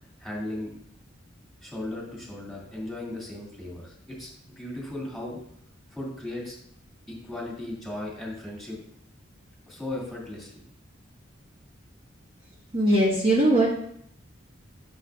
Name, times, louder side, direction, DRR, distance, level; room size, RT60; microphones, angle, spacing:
voice 1, 0.2-0.7 1.6-4.3 4.6-5.4 5.9-6.6 7.1-8.8 9.7-10.5, left 1 dB, ahead, -5 dB, 2.5 m, -36 dB
voice 2, 12.7-13.7, right 1 dB, 30° right, -5 dB, 1.4 m, -20 dB
10.0 x 7.4 x 2.5 m, 0.69 s
head